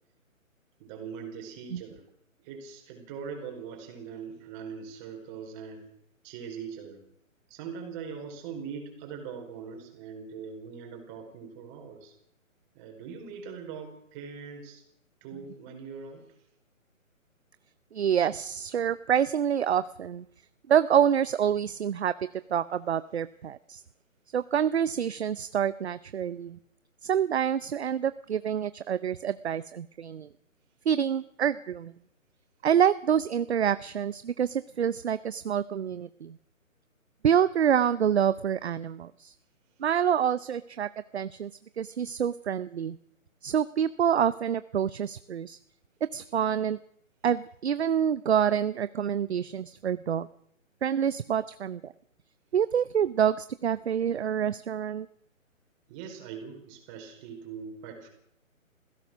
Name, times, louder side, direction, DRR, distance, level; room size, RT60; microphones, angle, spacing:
voice 1, 0.8-2.0 2.4-5.9 6.2-7.0 7.5-12.1 12.7-14.8 15.2-16.3 55.9-58.1, right 6 dB, 20° right, 3 dB, 4.8 m, -41 dB
voice 2, 17.9-20.2 20.7-22.1 22.5-23.8 24.3-26.6 27.0-30.3 30.9-31.9 32.6-36.4 37.2-39.3 39.8-41.5 41.8-43.0 43.4-45.6 46.1-46.8 47.2-50.3 50.8-51.9 52.5-55.1, right 8 dB, 50° right, 15 dB, 0.7 m, -27 dB
26.5 x 16.5 x 6.3 m, 0.74 s
figure-of-eight pair, 145°, 41 cm